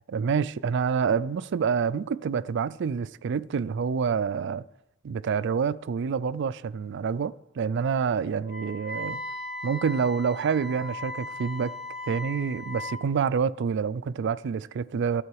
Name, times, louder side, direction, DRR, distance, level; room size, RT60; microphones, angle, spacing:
voice 1, 0.1-4.6 5.0-9.2 9.6-11.7 12.1-15.2, right 6 dB, 60° right, 0.4 m, -27 dB
Wind instrument woodwind instrument, 8.5-13.0, left 1 dB, 5° right, 1.3 m, -37 dB
12.5 x 7.6 x 4.7 m
head